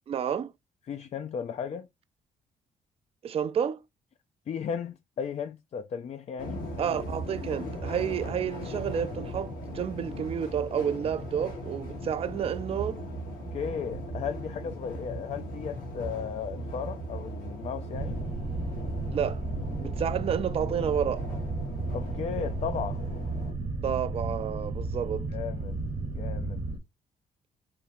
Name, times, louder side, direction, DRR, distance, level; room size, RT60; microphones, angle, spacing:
voice 1, 0.1-0.5 3.2-3.8 6.8-13.0 19.1-19.4 19.8-21.2 23.8-25.3, right 8 dB, 40° right, 0.4 m, -30 dB
voice 2, 0.9-1.9 4.5-6.6 13.5-18.2 21.9-23.0 25.3-25.8 26.1-26.6, left 7 dB, 50° left, 0.4 m, -35 dB
sound 1, 6.4-23.5, equal, 80° left, 1.5 m, -38 dB
sound 2, 17.9-26.8, right 3 dB, 60° right, 1.1 m, -33 dB
3.5 x 2.8 x 2.7 m
cardioid pair, 80°, 15 cm